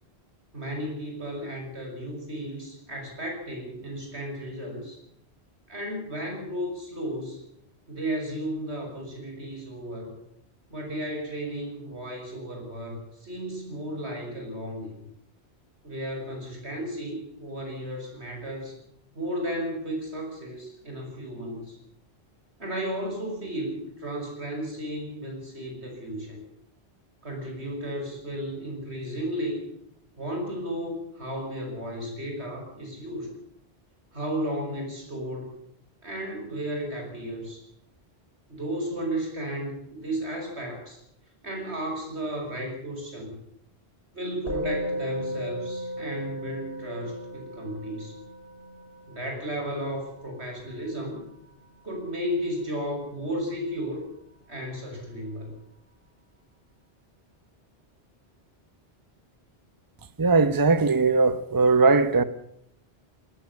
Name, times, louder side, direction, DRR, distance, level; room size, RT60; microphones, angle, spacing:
voice 1, 0.5-5.0 5.7-7.4 7.9-10.2 10.7-15.0 15.8-18.7 19.2-21.8 22.6-26.4 27.2-29.7 30.2-33.3 34.1-35.5 36.0-37.6 38.5-41.0 41.4-43.3 44.1-48.1 49.1-51.2 51.8-54.0 54.5-55.5, equal, 90° right, 7.3 m, -34 dB
Musical instrument, 44.5-54.0, equal, 80° left, 5.2 m, -37 dB
voice 2, 60.2-62.2, right 4 dB, 20° right, 1.0 m, -20 dB
18.5 x 15.0 x 9.8 m
omnidirectional pair, 1.1 m